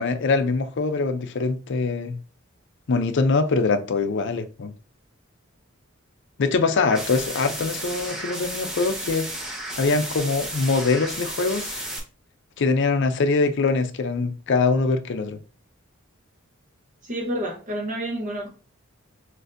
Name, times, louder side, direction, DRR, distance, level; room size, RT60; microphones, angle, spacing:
voice 1, 0.0-2.2 2.9-4.7 6.4-9.3 9.8-11.9 12.6-15.4, left 4 dB, 60° left, 0.5 m, -23 dB
sound 1, 6.8-12.0, right 1 dB, 5° right, 1.0 m, -33 dB
voice 2, 17.0-18.5, right 1 dB, 40° right, 0.9 m, -29 dB
6.4 x 2.6 x 2.6 m
head